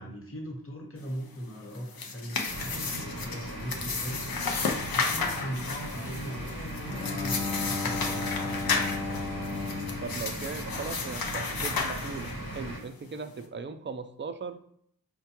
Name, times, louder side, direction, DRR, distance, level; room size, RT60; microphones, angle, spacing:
voice 1, 0.0-4.3 4.9-8.7, equal, 40° left, 0 dB, 1.1 m, -40 dB
sound 1, 1.7-12.6, left 4 dB, 75° left, 0.6 m, -33 dB
sound 2, 2.5-12.8, right 1 dB, 60° left, 1.1 m, -38 dB
Bowed string instrument, 6.9-11.2, left 4 dB, 15° left, 0.5 m, -35 dB
voice 2, 10.0-14.6, right 5 dB, 35° right, 9 dB, 0.4 m, -38 dB
4.4 x 2.2 x 2.8 m, 0.69 s
wide cardioid pair, 40°, 35 cm